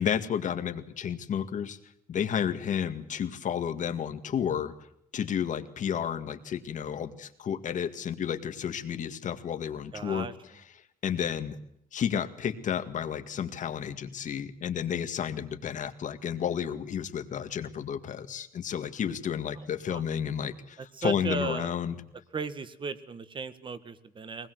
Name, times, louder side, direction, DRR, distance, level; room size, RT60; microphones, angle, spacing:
voice 1, 0.0-1.8 2.1-4.7 5.1-10.3 11.0-11.6 11.9-22.0, left 8 dB, 55° left, 9 dB, 2.1 m, -31 dB
voice 2, 9.9-10.3 19.6-20.0 20.8-21.7 22.3-24.5, right 4 dB, 30° right, 13 dB, 1.7 m, -36 dB
24.0 x 20.0 x 7.9 m, 0.75 s
cardioid pair, 150°, 15 cm